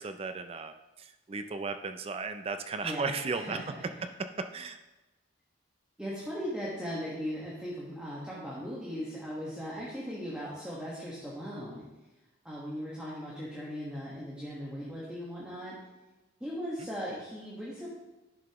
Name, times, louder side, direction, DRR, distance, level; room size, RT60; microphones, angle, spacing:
voice 1, 0.0-3.6 4.4-4.8, right 4 dB, 30° right, 9 dB, 0.4 m, -35 dB
voice 2, 2.8-3.6 6.0-11.8 12.4-15.8 16.4-17.9, equal, 5° right, -7 dB, 1.4 m, -38 dB
10.5 x 6.6 x 3.0 m, 1.1 s
head